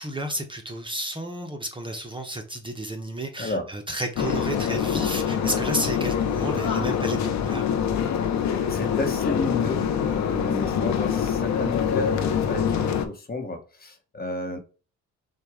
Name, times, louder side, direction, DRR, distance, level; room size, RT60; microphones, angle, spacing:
voice 1, 0.0-7.7, right 1 dB, 15° right, 3 dB, 0.8 m, -32 dB
voice 2, 3.4-3.7 8.7-14.6, left 2 dB, 30° left, 5 dB, 1.1 m, -32 dB
sound 1, 4.2-13.1, left 8 dB, 65° left, 0.7 m, -25 dB
6.4 x 2.4 x 3.5 m, 0.36 s
cardioid pair, 90°, 30 cm